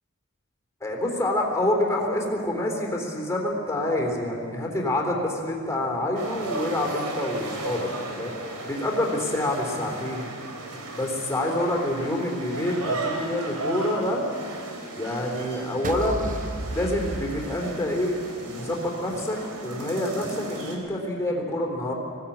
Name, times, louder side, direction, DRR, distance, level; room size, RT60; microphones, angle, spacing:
voice 1, 0.8-8.3 8.7-10.3 10.9-14.2 15.0-16.3 16.7-21.9, left 1 dB, 15° left, -1 dB, 3.7 m, -27 dB
sound 1, 6.1-20.8, right 2 dB, 80° right, 3.6 m, -36 dB
sound 2, 15.8-18.2, right 2 dB, 35° right, 0.7 m, -33 dB
20.5 x 16.5 x 8.8 m, 2.2 s
head